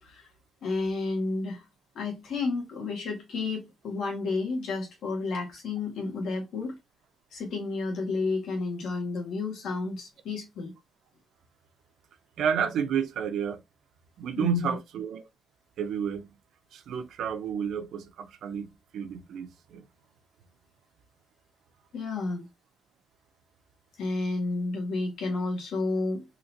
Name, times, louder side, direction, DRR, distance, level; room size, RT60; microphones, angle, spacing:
voice 1, 0.6-1.7 1.9-6.7 7.3-10.7 14.4-14.8 21.9-22.5 24.0-26.2, left 3 dB, 85° left, 1.7 m, -31 dB
voice 2, 12.4-13.6 14.2-15.3 15.8-16.4 16.7-19.8, right 7 dB, 80° right, 0.6 m, -31 dB
3.9 x 2.9 x 2.8 m
cardioid pair, 115°, 0 cm